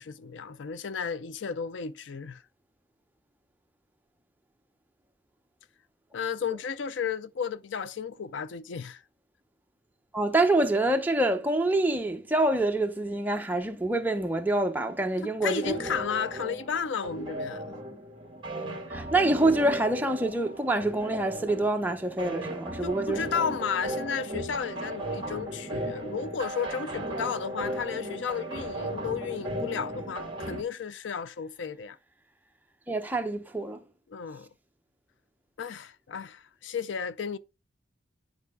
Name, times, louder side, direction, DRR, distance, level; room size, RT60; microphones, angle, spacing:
voice 1, 0.0-2.4 6.1-9.0 15.2-17.6 22.8-32.0 34.1-34.5 35.6-37.4, left 6 dB, 70° left, 0.5 m, -33 dB
voice 2, 10.1-15.7 18.9-23.2 32.9-33.8, right 2 dB, 10° right, 0.7 m, -26 dB
sound 1, 15.6-30.6, right 1 dB, 25° right, 1.5 m, -36 dB
10.5 x 4.9 x 3.5 m
head